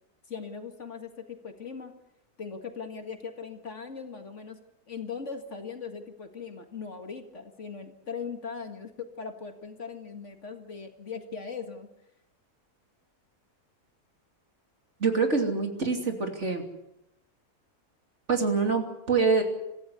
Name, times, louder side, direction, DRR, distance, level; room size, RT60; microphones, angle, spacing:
voice 1, 0.3-1.9 2.4-4.6 4.9-11.9, left 5 dB, 50° left, 6 dB, 2.1 m, -39 dB
voice 2, 15.0-16.6 18.3-19.4, right 4 dB, 45° right, 4 dB, 3.2 m, -25 dB
26.0 x 15.5 x 8.2 m, 0.86 s
omnidirectional pair, 1.7 m